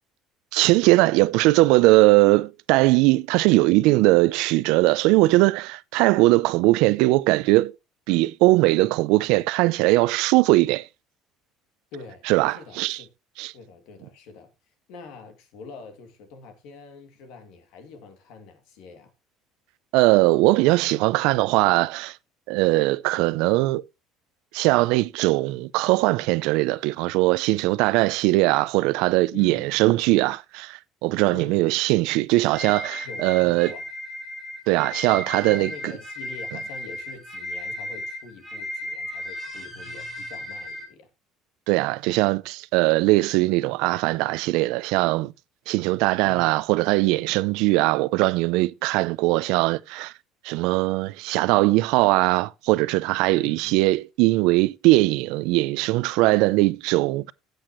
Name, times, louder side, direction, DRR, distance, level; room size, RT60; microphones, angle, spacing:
voice 1, 0.5-7.7 8.1-10.9 12.3-13.0 13.4-13.5 19.9-22.2 22.5-23.9 24.5-33.7 34.7-35.9 41.7-45.3 45.7-50.1 50.4-57.3, right 20 dB, 80° right, 0.5 m, -20 dB
voice 2, 11.9-13.1 13.5-14.5 14.9-19.1 29.3-29.7 31.3-31.7 33.0-33.9 35.4-41.1 46.2-46.6 53.3-53.9, left 4 dB, 70° left, 2.6 m, -44 dB
sound 1, 32.5-40.9, left 1 dB, 10° left, 4.7 m, -35 dB
15.0 x 7.9 x 3.1 m
cardioid pair, 155°, 0 cm